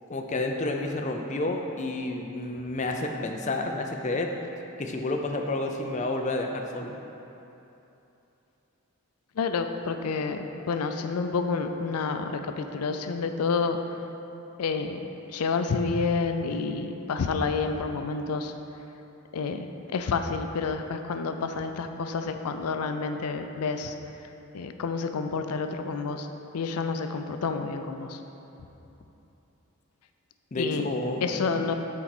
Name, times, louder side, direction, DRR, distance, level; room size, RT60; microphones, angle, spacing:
voice 1, 0.1-4.3 4.8-7.0 30.5-31.6, left 2 dB, 30° left, 3 dB, 0.4 m, -30 dB
voice 2, 9.4-13.8 14.6-15.0 15.3-18.5 19.3-23.9 24.5-26.3 26.5-28.2 30.6-30.9 31.2-31.7, left 4 dB, 85° left, 7 dB, 0.4 m, -29 dB
8.5 x 4.5 x 4.1 m, 2.9 s
head